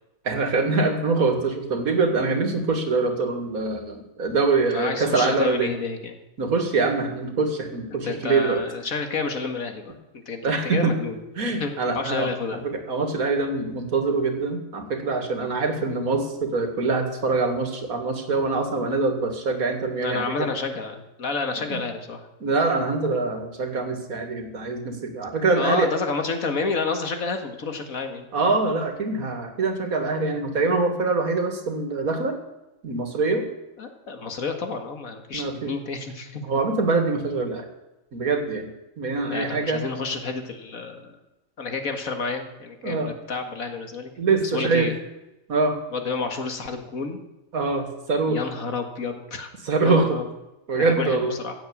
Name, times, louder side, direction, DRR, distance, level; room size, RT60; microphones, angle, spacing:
voice 1, 0.2-5.7 6.4-8.6 10.4-10.9 11.4-20.5 21.7-21.8 22.4-25.9 28.3-32.4 32.8-33.5 35.3-35.7 36.4-37.7 38.1-38.7 39.0-39.8 42.8-43.1 44.2-44.9 45.5-45.8 47.5-48.4 49.6-50.2 50.7-51.4, right 3 dB, 85° right, 6 dB, 2.4 m, -24 dB
voice 2, 4.7-6.1 7.9-11.2 11.6-12.6 20.0-22.3 25.5-28.3 33.8-36.4 39.3-41.2 41.6-44.1 44.4-44.9 45.9-47.2 48.3-49.5 49.8-50.3 50.7-51.5, left 4 dB, 75° left, 6 dB, 2.2 m, -30 dB
15.5 x 7.9 x 8.6 m, 0.97 s
omnidirectional pair, 1.5 m